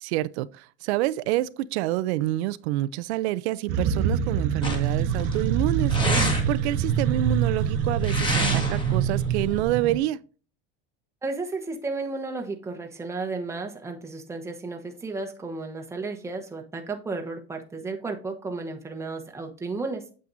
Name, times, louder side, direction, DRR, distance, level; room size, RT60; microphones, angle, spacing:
voice 1, 0.0-10.2, right 15 dB, 80° right, 0.5 m, -28 dB
sound 1, 3.7-10.0, right 8 dB, 45° right, 0.8 m, -26 dB
sound 2, 4.6-9.6, right 1 dB, 15° left, 1.7 m, -29 dB
voice 2, 11.2-20.0, right 3 dB, 10° right, 1.0 m, -33 dB
8.5 x 7.6 x 2.6 m
supercardioid pair, 150°, 33 cm